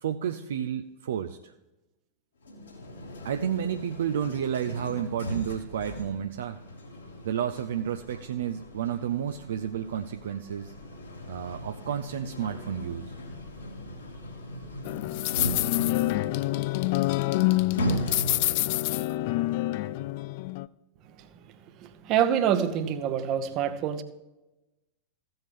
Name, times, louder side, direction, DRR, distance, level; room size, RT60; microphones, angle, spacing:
voice 1, 0.0-1.5 3.2-6.6 7.2-10.7 11.3-13.1, right 9 dB, 60° right, 7 dB, 0.5 m, -31 dB
sound 1, 2.4-18.8, equal, 75° left, 2.7 m, -38 dB
sound 2, 14.8-20.7, left 18 dB, 50° left, 0.3 m, -27 dB
voice 2, 21.8-24.0, right 9 dB, 40° right, 11 dB, 1.0 m, -26 dB
15.0 x 7.8 x 3.6 m, 1.0 s
figure-of-eight pair, 90°, 0 cm